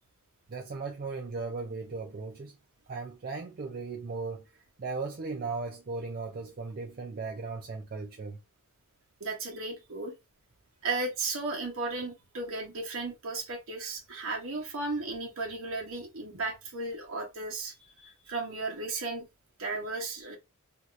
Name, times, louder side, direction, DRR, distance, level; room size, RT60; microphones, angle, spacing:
voice 1, 0.5-2.6 2.9-4.4 4.8-8.4, right 4 dB, 45° right, 0.5 m, -37 dB
voice 2, 9.2-10.1 10.8-17.7 18.0-19.3 19.6-20.4, right 3 dB, 65° right, 1.1 m, -35 dB
2.8 x 2.4 x 3.0 m
head